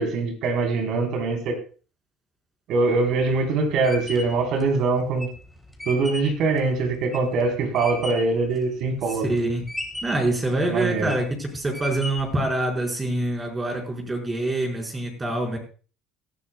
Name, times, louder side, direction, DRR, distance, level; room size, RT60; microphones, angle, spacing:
voice 1, 0.0-1.6 2.7-5.3 5.9-9.3 10.6-11.1, right 3 dB, 65° right, 3 dB, 3.8 m, -23 dB
sound 1, 2.9-8.4 8.8-9.4 9.7-10.3 10.8-11.3 11.7-12.4, left 1 dB, ahead, 3.5 m, -35 dB
voice 2, 9.3-9.6 10.0-15.6, right 1 dB, 20° right, 1 dB, 4.5 m, -25 dB
18.5 x 12.5 x 2.2 m, 0.37 s
supercardioid pair, 90°, 0 cm